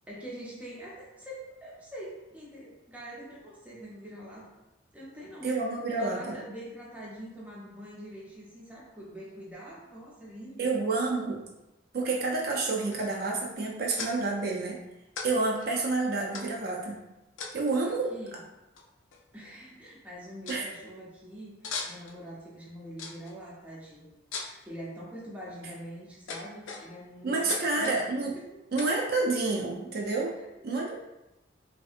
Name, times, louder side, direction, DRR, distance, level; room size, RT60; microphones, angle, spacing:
voice 1, 0.1-4.6 4.9-10.7 17.8-18.4 19.3-21.6 21.9-28.0 28.3-28.6 30.4-30.5 30.9-31.0, equal, 5° right, -5 dB, 0.6 m, -44 dB
voice 2, 5.4-6.4 10.6-11.4 11.9-14.8 15.2-17.0 17.5-18.1 20.5-20.6 27.2-28.4 28.7-30.4 30.6-30.9, right 3 dB, 50° right, -1 dB, 0.4 m, -29 dB
sound 1, 12.9-13.3 14.0-14.1 15.2-15.3 15.6-15.7 16.3-16.7 17.4-17.8 18.8-18.9 19.1-19.5 19.9-20.0 20.5-20.6 21.6-22.2 23.0-23.3 24.3-24.6 25.3-25.7 26.3-27.1 27.5-28.0 28.8-29.0, left 4 dB, 80° left, 0.4 m, -38 dB
3.2 x 2.7 x 2.4 m, 0.94 s
head